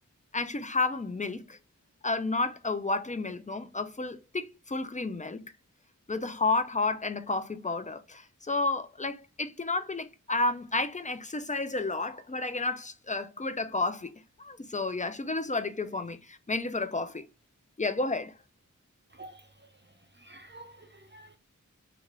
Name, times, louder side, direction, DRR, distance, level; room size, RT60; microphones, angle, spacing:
voice 1, 0.3-1.6 2.0-5.4 6.1-17.3 17.8-18.3, left 3 dB, 25° left, 0.5 m, -31 dB
voice 2, 20.2-21.4, right 2 dB, 35° right, 0.5 m, -49 dB
3.9 x 2.5 x 3.1 m
wide cardioid pair, 50°, 32 cm